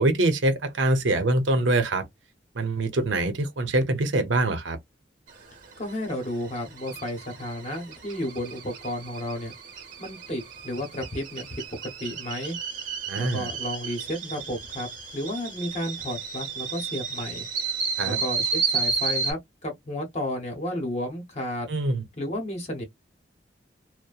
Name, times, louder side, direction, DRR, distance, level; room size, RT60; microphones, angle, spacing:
voice 1, 0.0-2.1 2.5-4.8 13.1-13.5 18.0-18.2 21.7-22.0, right 2 dB, 90° right, 0.7 m, -24 dB
sound 1, 5.3-19.3, right 5 dB, 45° right, 1.0 m, -33 dB
voice 2, 5.8-9.5 10.0-12.6 13.2-17.4 18.0-21.7 22.2-22.8, left 1 dB, 35° left, 0.9 m, -32 dB
2.8 x 2.1 x 2.3 m
head